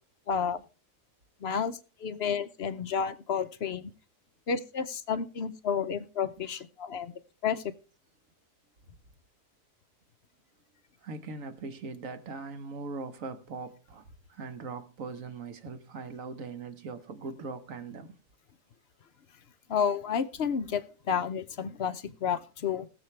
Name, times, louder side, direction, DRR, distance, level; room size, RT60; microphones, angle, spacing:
voice 1, 0.3-0.6 1.4-3.9 4.5-7.1 7.4-7.6 19.7-22.9, left 7 dB, 55° left, 0.8 m, -31 dB
voice 2, 11.0-18.1, right 4 dB, 55° right, 1.5 m, -40 dB
20.5 x 7.3 x 3.2 m
omnidirectional pair, 1.7 m